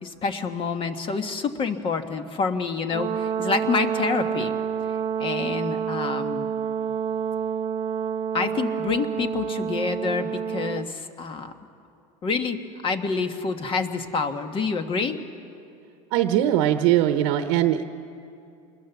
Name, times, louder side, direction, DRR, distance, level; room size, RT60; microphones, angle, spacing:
voice 1, 0.0-4.5 4.9-6.5 8.3-11.5 12.2-15.2, left 4 dB, 30° left, 7 dB, 1.5 m, -27 dB
Brass instrument, 2.9-10.9, right 8 dB, 35° right, 0.5 m, -28 dB
voice 2, 16.1-17.8, right 12 dB, 70° right, 8 dB, 1.0 m, -21 dB
26.5 x 21.0 x 7.2 m, 2.6 s
supercardioid pair, 135°, 17 cm